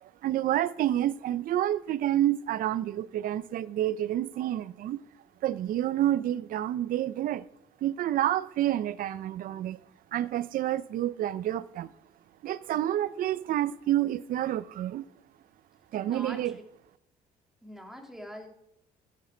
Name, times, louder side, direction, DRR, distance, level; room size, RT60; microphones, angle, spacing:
voice 1, 0.0-5.0 5.4-7.4 7.8-9.8 10.1-11.9 12.4-15.0 15.9-16.5, right 12 dB, 55° right, 0.5 m, -29 dB
voice 2, 16.1-16.6 17.6-18.5, equal, ahead, 2.6 m, -43 dB
13.5 x 8.3 x 4.5 m
cardioid pair, 110°, 17 cm